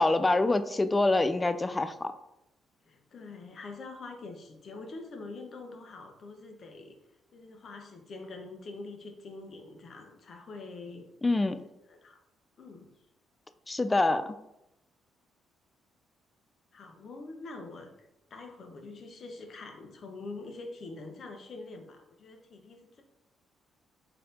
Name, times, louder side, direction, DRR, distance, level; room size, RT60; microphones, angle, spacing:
voice 1, 0.0-2.1 11.2-11.6 13.7-14.4, left 2 dB, 20° left, 11 dB, 0.3 m, -26 dB
voice 2, 2.8-7.0 7.3-11.1 11.6-12.2 12.6-13.0 16.7-23.0, left 3 dB, 50° left, 5 dB, 0.8 m, -45 dB
4.1 x 2.8 x 3.8 m, 0.89 s
cardioid pair, 90°, 0 cm